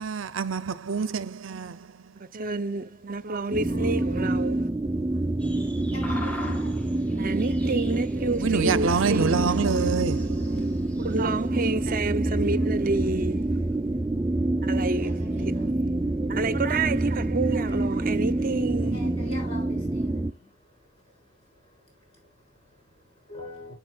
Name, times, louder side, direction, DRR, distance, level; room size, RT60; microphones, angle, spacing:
voice 1, 0.0-2.1 8.4-11.0, right 5 dB, 75° right, 0.7 m, -27 dB
voice 2, 2.1-4.7 7.2-9.7 11.0-13.9 14.6-15.6 16.3-19.0, right 3 dB, 45° right, 0.8 m, -29 dB
voice 3, 3.2-4.3 4.9-7.3 9.6-11.1 11.4-12.8 13.8-16.4 17.7-18.2 18.8-23.7, left 2 dB, 30° left, 7.3 m, -47 dB
sound 1, 3.5-20.3, right 2 dB, 15° right, 0.5 m, -27 dB
sound 2, 5.4-11.5, left 1 dB, 10° left, 2.5 m, -43 dB
12.0 x 8.0 x 2.4 m
head